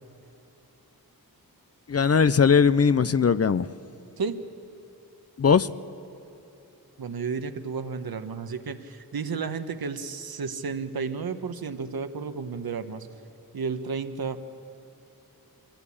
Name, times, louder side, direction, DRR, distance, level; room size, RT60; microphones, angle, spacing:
voice 1, 1.9-3.7 5.4-5.7, left 6 dB, 40° left, 0.6 m, -19 dB
voice 2, 7.0-13.1 13.5-14.4, right 5 dB, 75° right, 1.2 m, -32 dB
25.5 x 16.0 x 8.6 m
wide cardioid pair, 90°, 37 cm